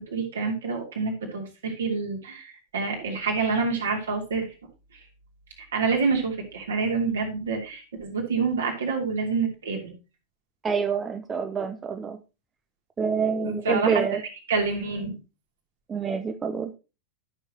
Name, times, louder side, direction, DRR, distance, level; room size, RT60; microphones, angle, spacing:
voice 1, 0.0-4.5 4.9-5.0 5.6-9.9 13.4-14.0 14.5-15.2, right 4 dB, 65° right, 1 dB, 2.9 m, -27 dB
voice 2, 10.6-12.2 13.0-14.2 15.9-16.7, right 6 dB, 20° right, 8 dB, 0.7 m, -27 dB
13.0 x 6.4 x 2.9 m, 0.30 s
figure-of-eight pair, 90°, 0 cm